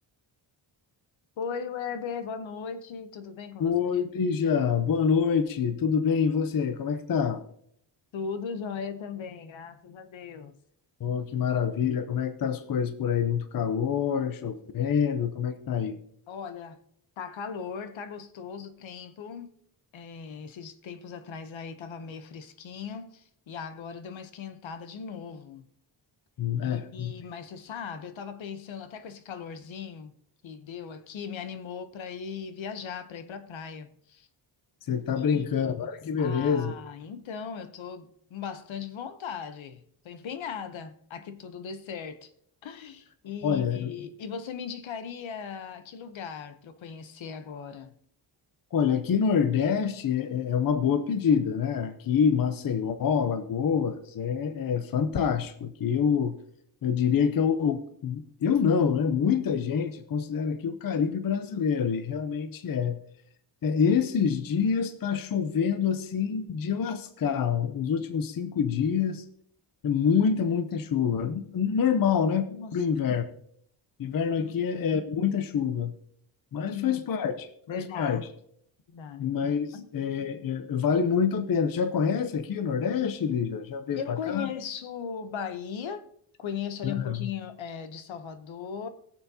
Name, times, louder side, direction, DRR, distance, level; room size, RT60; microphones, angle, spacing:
voice 1, 1.4-3.8 8.1-10.5 16.3-16.8 17.2-19.6 19.9-25.7 26.6-30.1 30.4-34.3 35.2-35.9 36.2-42.3 42.6-47.9 72.5-72.9 74.4-74.6 76.7-77.0 77.7-78.2 78.9-79.3 79.7-79.9 84.0-86.1 86.4-88.9, left 6 dB, 75° left, 0.9 m, -38 dB
voice 2, 3.6-7.4 11.0-16.0 26.4-27.1 34.9-36.7 43.4-43.9 48.7-56.4 56.8-63.0 63.6-69.3 69.8-73.3 74.0-75.9 76.5-78.3 79.2-84.5 86.8-87.3, left 7 dB, 45° left, 0.7 m, -26 dB
20.5 x 7.1 x 2.8 m
wide cardioid pair, 170°, 47 cm